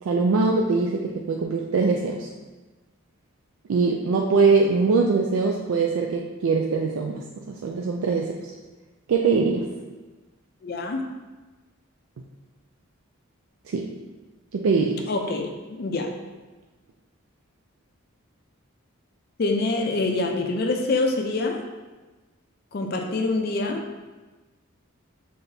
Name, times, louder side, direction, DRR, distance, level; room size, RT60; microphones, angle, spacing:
voice 1, 0.0-2.3 3.7-8.5 9.1-9.7 13.7-13.9 14.5-15.1, right 4 dB, 85° right, 1 dB, 0.4 m, -22 dB
voice 2, 10.6-11.0 15.1-16.1 19.4-21.6 22.7-23.8, left 2 dB, 50° left, 3 dB, 0.4 m, -25 dB
5.6 x 3.3 x 2.7 m, 1.2 s
head